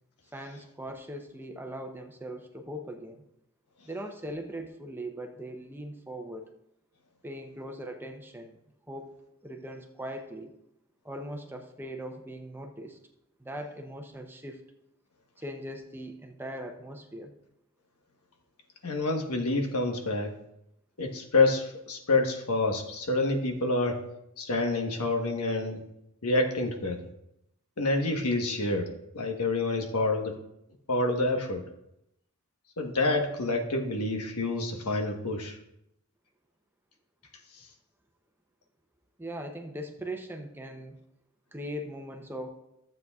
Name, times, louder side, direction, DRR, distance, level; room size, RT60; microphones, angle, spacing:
voice 1, 0.3-3.2 3.9-6.5 7.2-8.6 8.9-9.1 9.4-10.5 11.0-13.0 13.4-14.6 15.4-17.3 39.2-41.0 41.5-42.5, right 1 dB, 10° right, 4 dB, 0.6 m, -40 dB
voice 2, 18.8-20.3 21.0-24.0 24.4-25.8 26.2-27.0 27.8-28.9 29.1-30.4 30.9-31.6 32.8-35.6, left 2 dB, 90° left, 3 dB, 1.2 m, -27 dB
14.5 x 7.7 x 2.4 m, 0.83 s
head